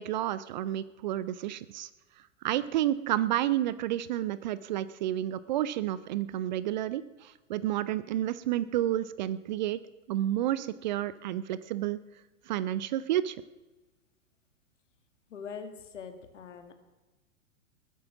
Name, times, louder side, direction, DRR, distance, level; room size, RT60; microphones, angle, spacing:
voice 1, 0.0-1.9 2.4-9.8 10.1-12.0 12.5-13.4, right 12 dB, 35° right, 17 dB, 0.5 m, -30 dB
voice 2, 15.3-16.7, left 6 dB, 65° left, 7 dB, 2.3 m, -43 dB
20.5 x 9.2 x 6.0 m, 1.2 s
figure-of-eight pair, 105°, 40 cm